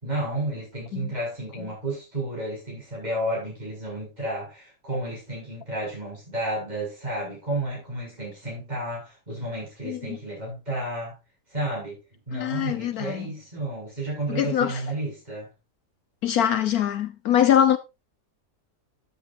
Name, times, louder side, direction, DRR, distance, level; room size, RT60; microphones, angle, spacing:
voice 1, 0.0-11.1 11.5-12.0 12.3-15.5, right 1 dB, 25° right, 7.6 m, -32 dB
voice 2, 9.8-10.2 12.3-13.3 14.3-14.8 16.2-17.8, left 10 dB, 70° left, 1.3 m, -23 dB
13.5 x 8.8 x 2.7 m
omnidirectional pair, 1.7 m